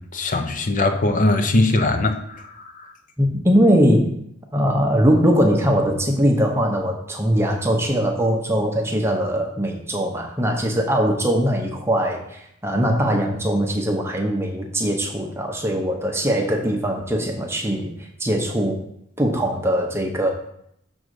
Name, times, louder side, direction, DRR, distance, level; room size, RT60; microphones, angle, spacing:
voice 1, 0.0-2.9, left 2 dB, 40° left, 7 dB, 0.7 m, -21 dB
voice 2, 3.2-4.1 4.5-18.8 19.2-20.3, equal, 10° right, 1 dB, 0.8 m, -21 dB
6.3 x 3.9 x 6.3 m, 0.74 s
head